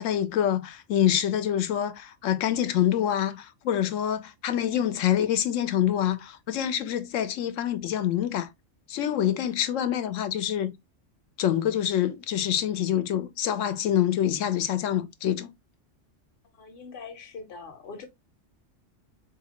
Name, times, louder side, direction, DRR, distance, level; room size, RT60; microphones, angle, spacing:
voice 1, 0.0-8.5 8.9-10.8 11.4-15.5, left 10 dB, 85° left, 1.0 m, -26 dB
voice 2, 16.6-18.1, left 4 dB, 50° left, 0.9 m, -42 dB
3.9 x 2.7 x 2.8 m
omnidirectional pair, 1.3 m